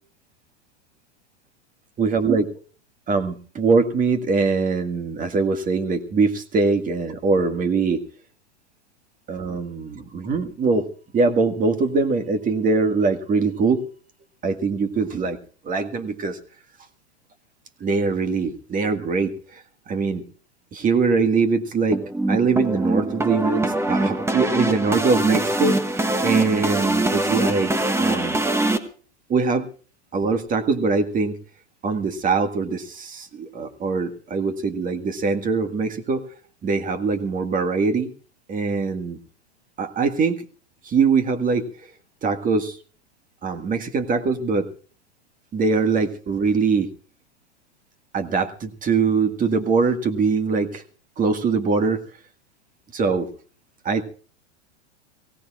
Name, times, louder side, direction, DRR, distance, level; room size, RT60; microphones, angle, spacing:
voice 1, 2.0-2.5 3.1-8.0 9.3-10.9 11.1-13.8 14.4-15.4 15.6-16.4 17.8-20.2 20.7-22.0 22.3-28.4 29.3-29.7 30.1-31.4 31.8-36.2 36.6-38.1 38.5-39.2 39.8-40.4 40.8-41.7 42.2-42.8 43.4-44.7 45.5-46.9 48.1-50.8 51.2-52.0 52.9-53.3 53.9-54.0, right 4 dB, 25° right, 8 dB, 1.8 m, -22 dB
sound 1, 21.9-28.8, right 2 dB, 5° right, 1.4 m, -23 dB
23.5 x 17.0 x 2.5 m, 0.40 s
hypercardioid pair, 120°, 35 cm